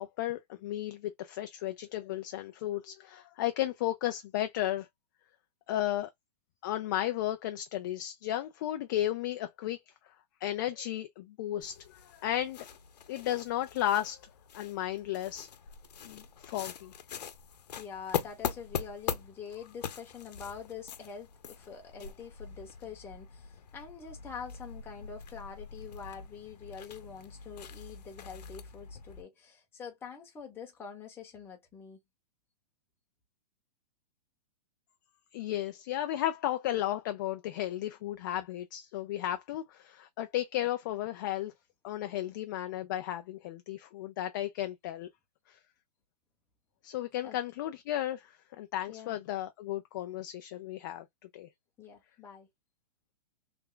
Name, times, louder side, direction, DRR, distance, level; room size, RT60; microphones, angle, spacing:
voice 1, 0.0-4.9 5.7-6.1 6.6-9.8 10.4-12.6 13.1-15.5 16.0-17.0 35.3-41.5 41.8-45.1 45.5-45.6 46.8-51.1 51.3-51.5, left 13 dB, 30° left, 0.4 m, -34 dB
sound 1, 11.6-29.2, left 8 dB, 85° left, 0.8 m, -42 dB
voice 2, 17.8-32.0 47.2-47.4 48.9-49.2 51.8-52.5, left 6 dB, 10° left, 1.0 m, -45 dB
3.3 x 2.2 x 3.7 m
hypercardioid pair, 160°, 20 cm